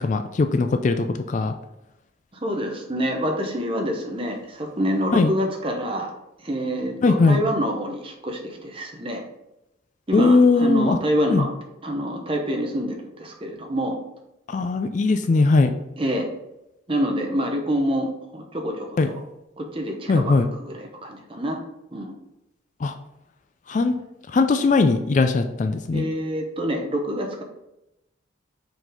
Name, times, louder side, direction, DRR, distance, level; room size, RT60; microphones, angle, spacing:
voice 1, 0.0-1.5 5.1-5.3 7.0-7.4 10.1-11.0 11.3-11.5 14.5-15.7 19.0-19.1 20.1-20.5 22.8-22.9 23.7-24.0 24.3-26.1, left 3 dB, 40° left, 8 dB, 0.3 m, -19 dB
voice 2, 2.4-6.1 6.4-9.2 10.1-11.5 11.8-14.0 16.0-16.3 16.9-19.2 19.6-21.6 21.9-22.1 25.9-27.4, equal, 25° right, 2 dB, 0.8 m, -26 dB
4.9 x 3.9 x 5.0 m, 0.91 s
head